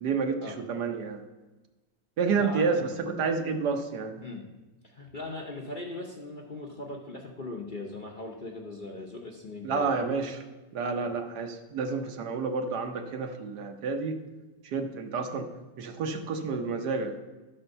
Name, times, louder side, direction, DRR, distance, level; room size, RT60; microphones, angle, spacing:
voice 1, 0.0-1.2 2.2-4.2 9.6-10.4 10.7-14.2 14.6-15.5 15.8-17.1, right 4 dB, 75° right, 6 dB, 1.4 m, -30 dB
voice 2, 2.3-2.8 4.2-4.5 4.8-10.0, left 2 dB, 40° left, 0 dB, 0.8 m, -39 dB
11.5 x 4.4 x 6.6 m, 1.2 s
omnidirectional pair, 1.8 m